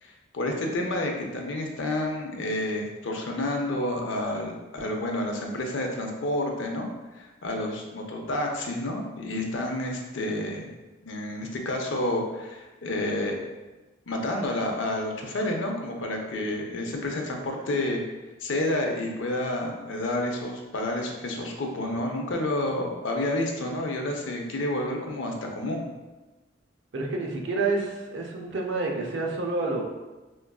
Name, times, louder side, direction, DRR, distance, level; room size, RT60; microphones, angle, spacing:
voice 1, 0.0-6.9 7.2-10.7 11.0-13.5 14.1-18.0 18.4-25.9, left 1 dB, 85° left, 2 dB, 0.5 m, -29 dB
voice 2, 26.9-29.8, right 3 dB, 75° right, 0 dB, 0.6 m, -28 dB
4.4 x 2.4 x 2.3 m, 1.2 s
head